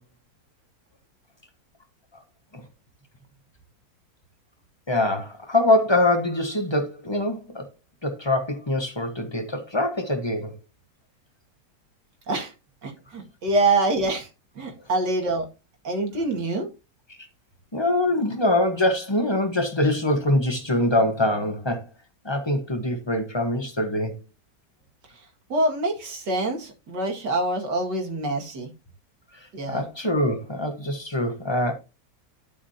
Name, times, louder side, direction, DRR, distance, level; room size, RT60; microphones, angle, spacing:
voice 1, 4.9-7.6 8.0-10.5 17.7-21.8 22.2-24.2 29.7-31.7, left 1 dB, 15° left, 1.1 m, -24 dB
voice 2, 12.8-14.3 14.6-15.5 15.8-16.7 25.5-28.7 29.5-29.8, right 2 dB, 70° right, 2.7 m, -25 dB
12.0 x 6.0 x 2.8 m
omnidirectional pair, 1.9 m